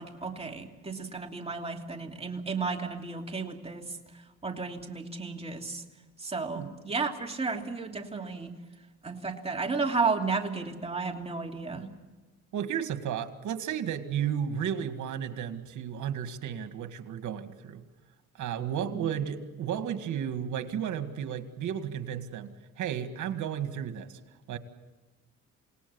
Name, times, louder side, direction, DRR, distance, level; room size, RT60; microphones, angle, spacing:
voice 1, 0.0-3.9 4.4-5.8 6.2-8.5 9.0-11.8 18.9-19.1, right 4 dB, 20° right, 2 dB, 3.0 m, -33 dB
voice 2, 12.5-17.8 18.4-24.2 24.5-24.6, right 9 dB, 75° right, 9 dB, 2.0 m, -33 dB
28.0 x 18.5 x 7.0 m, 1.2 s
cardioid pair, 90°, 30 cm